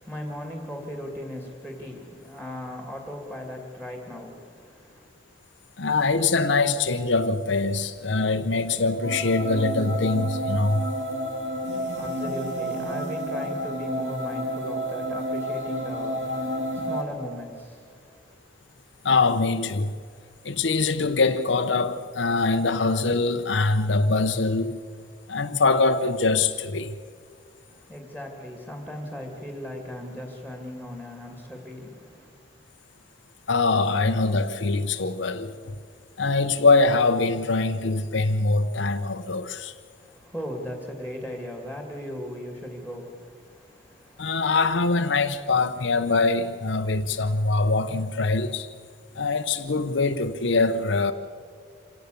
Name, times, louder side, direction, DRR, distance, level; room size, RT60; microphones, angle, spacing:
voice 1, 0.0-5.1 11.8-18.4 27.7-32.3 40.0-44.4, left 1 dB, 10° right, 2.6 m, -38 dB
voice 2, 5.8-10.9 16.8-16.9 19.0-19.9 20.4-24.8 25.3-27.0 33.5-35.7 36.2-39.7 44.2-48.7 49.1-51.1, left 3 dB, 75° left, 0.8 m, -23 dB
sound 1, 9.0-17.0, equal, 75° right, 3.1 m, -30 dB
26.0 x 17.0 x 6.9 m
head